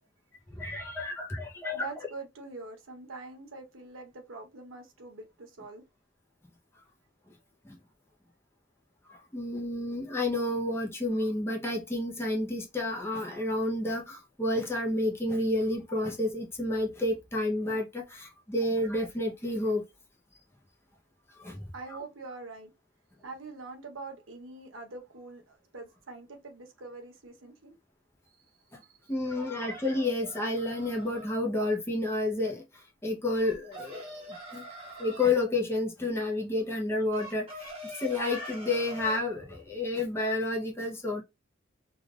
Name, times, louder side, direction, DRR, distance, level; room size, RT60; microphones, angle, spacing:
voice 1, 0.5-1.9 7.6-7.8 9.1-19.8 21.3-21.6 28.7-28.8 29.1-34.2 34.5-41.2, left 2 dB, 10° left, 0.7 m, -30 dB
voice 2, 1.7-5.8 21.7-22.7 23.2-27.7 28.8-29.1, right 3 dB, 85° right, 1.0 m, -44 dB
sound 1, 29.3-31.3 33.3-35.4 37.1-39.3, right 1 dB, 30° right, 1.5 m, -44 dB
3.3 x 2.3 x 2.4 m
head